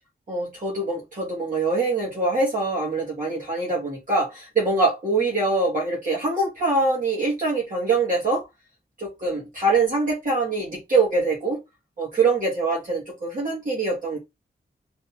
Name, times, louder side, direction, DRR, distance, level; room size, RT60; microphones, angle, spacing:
voice 1, 0.3-8.4 9.0-11.6 12.0-14.2, right 3 dB, 55° right, 2.1 m, -24 dB
4.1 x 2.9 x 3.5 m
wide cardioid pair, 135°, 17 cm